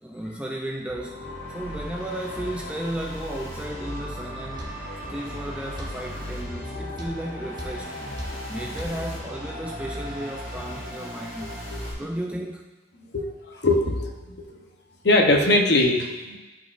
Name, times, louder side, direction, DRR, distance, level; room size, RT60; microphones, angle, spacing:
voice 1, 0.0-4.8 5.1-8.0 8.5-11.6 12.0-12.7, right 1 dB, 5° right, 1 dB, 0.3 m, -34 dB
sound 1, 0.9-11.9, equal, 80° left, 2.1 m, -36 dB
sound 2, 4.6-4.8 5.8-6.0 7.0-7.2 7.6-7.8 8.2-8.4 8.8-9.0, equal, 20° right, 0.8 m, -36 dB
voice 2, 13.1-14.6 15.0-16.4, left 2 dB, 55° left, 2 dB, 0.8 m, -22 dB
11.0 x 4.3 x 2.5 m, 1.1 s
head